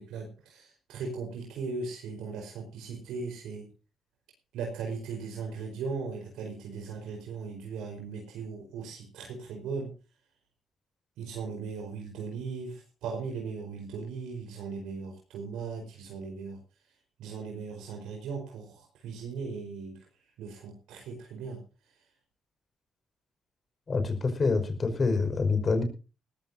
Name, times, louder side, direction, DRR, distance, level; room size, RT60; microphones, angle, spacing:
voice 1, 0.0-3.7 4.5-9.9 11.2-16.6 17.2-20.0 20.4-21.6, right 5 dB, 90° right, 2 dB, 4.7 m, -38 dB
voice 2, 23.9-25.8, left 4 dB, 35° left, 7 dB, 5.5 m, -26 dB
19.5 x 15.0 x 2.8 m, 0.34 s
cardioid pair, 90°, 0 cm